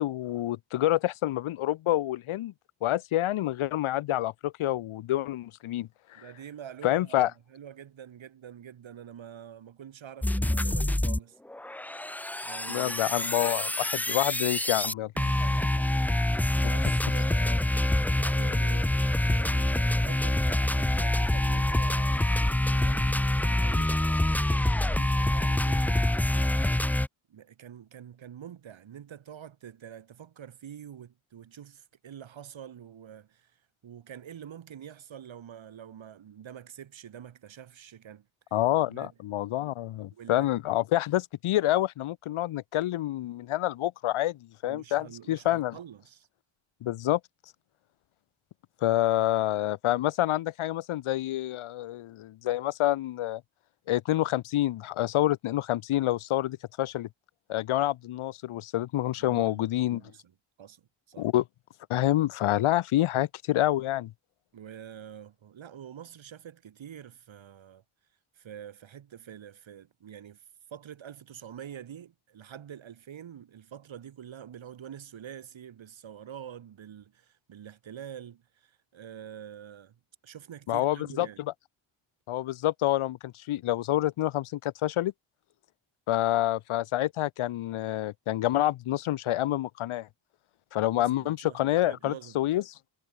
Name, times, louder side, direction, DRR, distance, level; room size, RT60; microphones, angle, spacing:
voice 1, 0.0-2.5 2.8-6.2 6.8-7.3 12.7-15.1 38.5-45.8 46.8-47.2 48.8-53.4 53.9-57.1 57.5-60.0 61.2-61.4 61.9-64.1 80.7-81.3 82.3-85.1 86.1-90.1 90.7-92.6, left 14 dB, 85° left, 0.8 m, -27 dB
voice 2, 6.2-11.4 12.4-12.9 15.1-17.7 18.1-22.3 22.8-26.1 27.3-38.6 38.9-39.1 40.1-40.5 44.6-46.3 59.2-60.3 60.6-60.8 61.1-61.3 64.5-67.8 68.3-70.4 70.7-81.4 90.8-92.4, right 9 dB, 70° right, 2.3 m, -46 dB
sound 1, 10.2-11.2 11.5-27.1, left 1 dB, 5° left, 0.3 m, -26 dB
cardioid pair, 75°, 48 cm